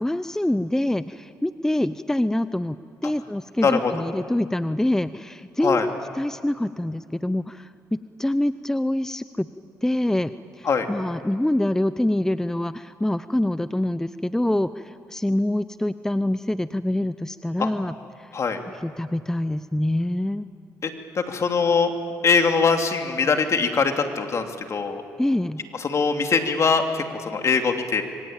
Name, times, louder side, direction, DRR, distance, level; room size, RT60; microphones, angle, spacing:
voice 1, 0.0-2.8 3.0-7.7 8.2-9.5 9.8-17.9 18.8-20.5 25.2-25.6, left 1 dB, 5° left, 13 dB, 0.7 m, -25 dB
voice 2, 20.8-21.9 22.2-25.0 25.7-28.0, left 5 dB, 50° left, 4 dB, 2.9 m, -22 dB
26.5 x 24.0 x 9.0 m, 2.5 s
supercardioid pair, 70°, 6 cm